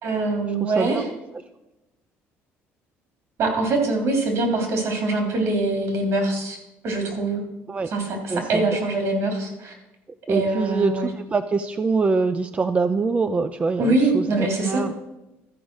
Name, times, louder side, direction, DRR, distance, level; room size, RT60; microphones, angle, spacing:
voice 1, 0.0-1.0 3.4-6.6 6.8-7.4 7.9-9.7 10.3-11.1 13.8-14.8, right 2 dB, 65° right, 2 dB, 3.5 m, -23 dB
voice 2, 0.6-1.0 7.7-7.9 8.3-8.6 10.3-14.9, right 4 dB, 25° right, 10 dB, 0.5 m, -24 dB
13.5 x 5.1 x 6.3 m, 0.98 s
cardioid pair, 100°, 5 cm